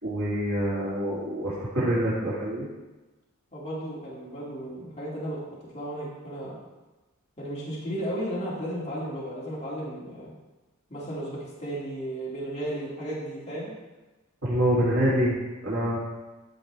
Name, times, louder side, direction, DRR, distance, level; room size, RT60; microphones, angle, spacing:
voice 1, 0.0-2.7 14.4-15.4 15.6-16.0, equal, 75° right, -9 dB, 2.6 m, -26 dB
voice 2, 3.5-5.4 5.7-6.6 7.4-10.3 10.9-13.7, right 1 dB, 30° left, -8 dB, 2.4 m, -34 dB
14.0 x 5.3 x 3.4 m, 1.1 s
head